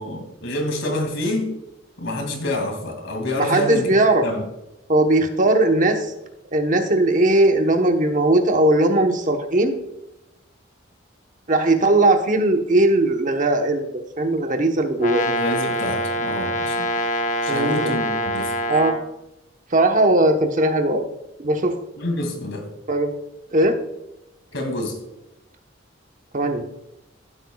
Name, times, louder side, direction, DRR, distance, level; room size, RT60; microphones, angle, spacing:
voice 1, 0.0-1.5 2.0-3.9 4.2-4.5 15.3-16.9 17.4-18.5 22.0-22.7 24.5-25.0, left 1 dB, 65° left, 4 dB, 2.3 m, -27 dB
voice 2, 3.4-4.2 4.9-6.1 6.5-9.7 11.5-15.2 17.5-18.0 18.7-19.0 19.7-21.0 21.4-21.7 22.9-23.1 23.5-23.8 26.3-26.6, right 2 dB, 40° right, 5 dB, 1.0 m, -18 dB
Brass instrument, 15.0-19.1, equal, 40° left, 0.9 m, -25 dB
14.5 x 8.1 x 2.3 m, 0.90 s
head